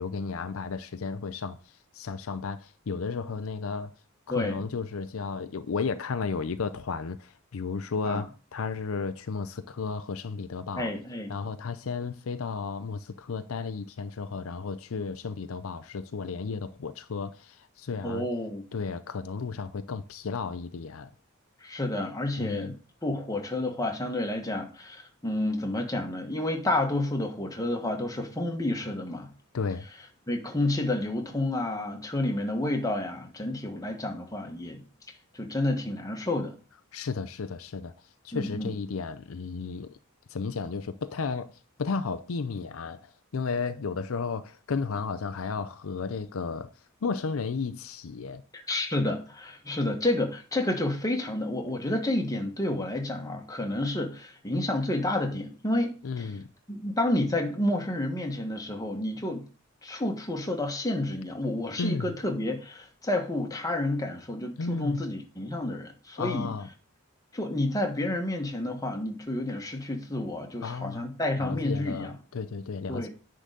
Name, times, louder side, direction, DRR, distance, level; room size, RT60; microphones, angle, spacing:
voice 1, 0.0-1.6 1.9-3.9 4.3-10.9 11.3-18.3 18.7-21.1 22.4-22.7 29.5-29.8 36.9-37.9 38.2-40.0 40.3-41.5 41.8-46.7 47.0-48.4 56.0-56.5 61.8-62.1 64.6-65.0 66.2-66.7 70.6-71.1 71.4-73.1, left 4 dB, 70° left, 0.5 m, -33 dB
voice 2, 4.3-4.6 8.0-8.2 10.8-11.3 18.0-18.6 21.6-22.7 23.0-29.3 30.3-34.8 35.3-36.5 38.3-38.7 48.5-56.3 56.7-59.4 59.8-66.5 67.3-72.1 72.9-73.1, left 1 dB, 15° left, 1.5 m, -30 dB
10.0 x 3.9 x 6.7 m
head